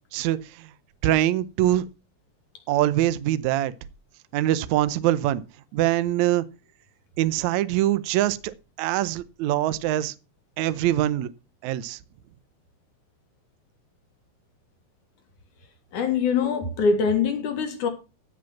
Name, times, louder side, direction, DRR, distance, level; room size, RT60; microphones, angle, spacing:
voice 1, 0.1-0.7 1.0-1.8 2.7-3.7 4.3-5.4 5.7-6.4 7.2-8.5 8.8-10.1 10.6-11.3 11.6-12.0, right 14 dB, 90° right, 1.6 m, -23 dB
voice 2, 15.9-17.9, left 5 dB, 60° left, 3.0 m, -23 dB
15.5 x 5.2 x 5.8 m
omnidirectional pair, 4.2 m